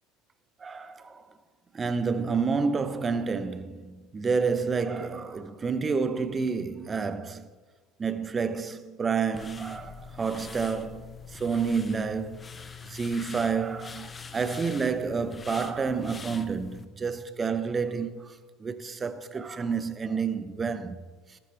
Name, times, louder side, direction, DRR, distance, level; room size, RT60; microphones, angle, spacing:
voice 1, 0.6-1.2 1.7-7.5 8.0-12.4 12.9-18.4 18.6-21.0, right 5 dB, 25° right, 0.8 m, -29 dB
sound 1, 9.3-16.8, left 6 dB, 25° left, 0.8 m, -44 dB
13.5 x 12.5 x 3.4 m
hypercardioid pair, 75°, 0 cm